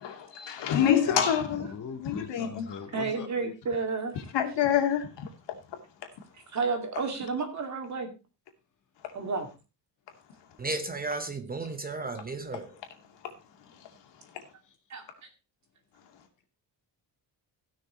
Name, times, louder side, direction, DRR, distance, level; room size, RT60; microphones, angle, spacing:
voice 1, 0.0-1.7 2.0-2.8 4.3-5.3, left 9 dB, 85° left, 2.6 m, -26 dB
voice 2, 1.6-3.5, left 6 dB, 45° left, 2.5 m, -40 dB
voice 3, 2.9-4.1 6.5-8.1 9.1-9.5 14.9-15.0, right 4 dB, 40° right, 2.5 m, -31 dB
voice 4, 10.6-12.7, right 3 dB, 20° right, 0.8 m, -34 dB
16.0 x 6.4 x 4.4 m
cardioid pair, 175°, 42 cm